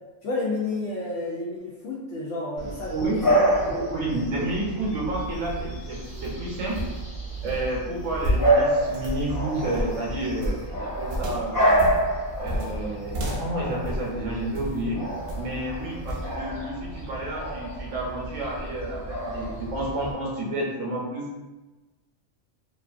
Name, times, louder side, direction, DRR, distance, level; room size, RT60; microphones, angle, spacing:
voice 1, 0.2-3.4 3.7-3.9, left 2 dB, 75° left, -7 dB, 0.9 m, -31 dB
Bark / Bird vocalization bird call bird song, 2.6-20.1, right 1 dB, 20° left, 0.7 m, -28 dB
voice 2, 2.9-6.8 7.4-11.7 12.4-15.0 15.4-21.4, right 1 dB, 85° right, -4 dB, 1.2 m, -30 dB
sound 1, 5.1-14.8 15.3-15.6 16.1-16.3, equal, 65° right, 0.8 m, -32 dB
2.9 x 2.4 x 2.4 m, 1.1 s
omnidirectional pair, 1.3 m